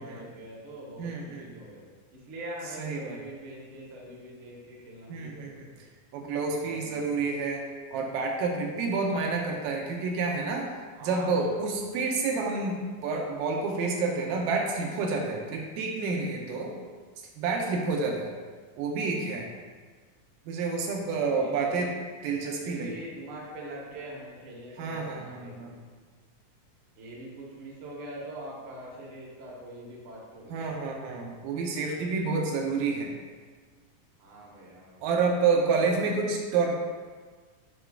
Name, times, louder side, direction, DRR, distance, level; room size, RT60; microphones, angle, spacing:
voice 1, 0.0-1.8 2.1-5.8 6.6-7.1 8.8-9.0 10.9-11.8 17.8-18.1 20.8-21.9 22.4-25.7 27.0-30.7 34.2-35.0 35.9-36.2, right 1 dB, 55° right, -4 dB, 1.5 m, -43 dB
voice 2, 1.0-1.5 2.8-3.2 5.1-5.7 6.1-7.7 7.9-10.7 11.0-16.7 17.4-18.3 18.8-19.5 20.5-22.0 22.2-22.9 24.8-25.7 30.5-33.1 35.0-36.7, right 4 dB, 85° right, 0 dB, 2.4 m, -29 dB
8.9 x 4.4 x 2.4 m, 1.5 s
omnidirectional pair, 3.9 m